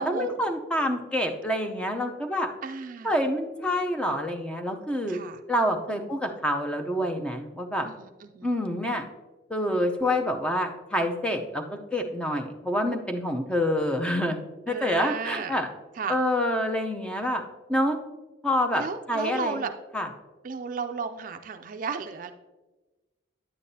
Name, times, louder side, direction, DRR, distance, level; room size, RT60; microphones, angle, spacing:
voice 1, 0.0-2.5 3.0-5.2 5.5-7.9 8.4-9.0 9.5-15.7 16.1-17.4 17.7-18.0 18.4-18.8 19.1-19.6 19.9-20.1, left 1 dB, 5° left, 4 dB, 0.6 m, -27 dB
voice 2, 2.6-3.1 5.1-5.4 5.9-6.0 7.8-8.5 14.7-15.6 15.9-16.2 18.7-19.7 20.4-22.3, right 5 dB, 45° right, 7 dB, 0.4 m, -34 dB
9.8 x 8.3 x 2.7 m, 1.2 s
head